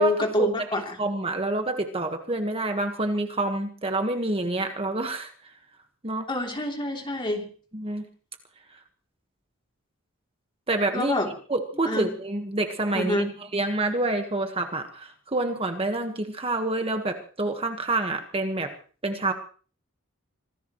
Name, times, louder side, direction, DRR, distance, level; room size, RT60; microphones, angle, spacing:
voice 1, 0.0-1.0 6.3-7.5 10.9-11.3 11.8-12.1 12.9-13.3, left 1 dB, 25° left, 2 dB, 3.2 m, -26 dB
voice 2, 1.0-5.3 6.0-6.3 7.7-8.1 10.7-11.1 11.5-13.2 13.5-18.7 19.0-19.3, right 2 dB, 30° right, 5 dB, 1.5 m, -27 dB
25.5 x 17.5 x 3.2 m, 0.41 s
head